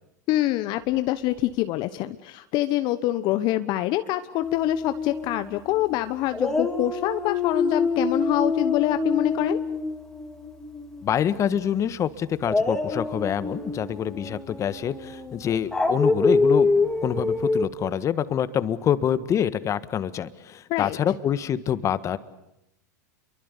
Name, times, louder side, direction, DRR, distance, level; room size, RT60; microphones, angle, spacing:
voice 1, 0.3-9.6 20.7-21.0, left 15 dB, 50° left, 11 dB, 1.1 m, -25 dB
Dog, 4.4-5.9 6.3-11.4 12.4-17.6, left 3 dB, 5° left, 3.6 m, -26 dB
voice 2, 11.0-22.2, left 9 dB, 30° left, 14 dB, 1.5 m, -26 dB
29.0 x 23.5 x 8.4 m, 0.86 s
hypercardioid pair, 110°, 10 cm